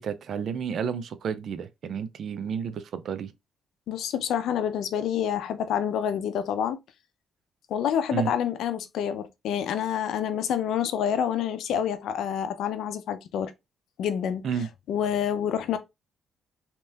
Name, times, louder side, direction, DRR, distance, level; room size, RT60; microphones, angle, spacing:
voice 1, 0.0-3.3 8.1-8.3 14.4-14.7, right 7 dB, 60° right, 0.5 m, -31 dB
voice 2, 3.9-6.8 7.7-13.5 14.0-14.4 14.9-15.8, left 9 dB, 80° left, 0.5 m, -27 dB
3.2 x 2.9 x 3.4 m
cardioid pair, 90°, 0 cm